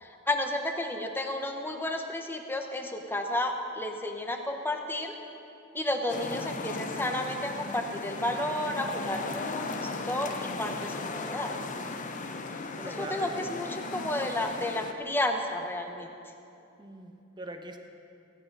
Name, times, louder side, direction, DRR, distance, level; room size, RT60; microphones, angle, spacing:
voice 1, 0.0-5.1 5.7-9.7 10.1-11.5 12.9-16.1, left 1 dB, 10° left, 4 dB, 0.9 m, -32 dB
sound 1, 6.1-14.9, left 3 dB, 40° left, 0.7 m, -36 dB
voice 2, 12.8-13.5 16.8-17.8, right 1 dB, 20° right, 5 dB, 0.9 m, -42 dB
15.5 x 9.6 x 5.5 m, 2.7 s
head